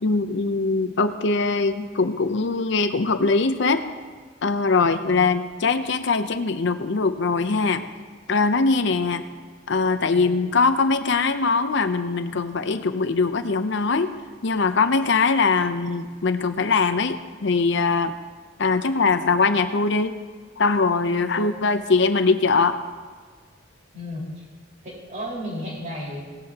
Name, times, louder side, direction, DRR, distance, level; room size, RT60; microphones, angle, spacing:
voice 1, 0.0-3.9 4.4-7.8 8.3-9.2 9.7-14.1 14.4-18.1 18.6-20.1 20.6-22.8, left 4 dB, 65° left, 9 dB, 0.7 m, -22 dB
voice 2, 23.9-24.4 24.8-26.3, equal, 40° right, -4 dB, 4.9 m, -34 dB
18.0 x 14.0 x 2.9 m, 1.5 s
head